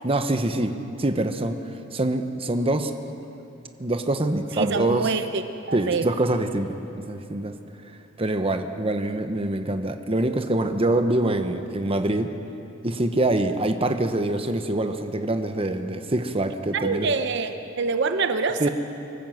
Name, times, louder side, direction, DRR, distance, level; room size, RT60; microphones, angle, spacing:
voice 1, 0.0-1.6 1.9-2.9 3.8-5.1 5.7-7.5 8.2-12.3 12.8-17.1 18.6-18.7, right 1 dB, 30° right, 7 dB, 1.0 m, -25 dB
voice 2, 4.6-5.4 5.7-6.1 16.7-18.7, right 4 dB, 60° right, 8 dB, 0.8 m, -25 dB
24.0 x 14.0 x 7.9 m, 2.9 s
head